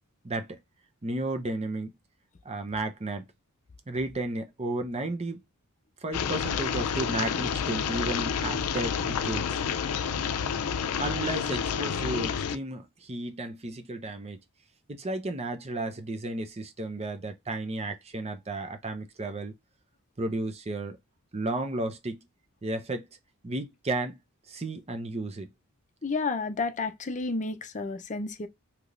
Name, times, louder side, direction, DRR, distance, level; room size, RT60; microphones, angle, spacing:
voice 1, 0.2-0.6 1.0-1.9 2.4-3.2 3.9-5.4 6.0-9.6 11.0-14.4 14.9-19.5 20.2-21.0 21.3-22.2 22.6-23.1 23.4-24.2 24.5-25.5, right 2 dB, 30° right, 0.7 m, -33 dB
sound 1, 6.1-12.5, left 7 dB, 80° left, 0.5 m, -29 dB
voice 2, 26.0-28.5, left 3 dB, 35° left, 0.6 m, -31 dB
3.4 x 2.9 x 2.5 m
head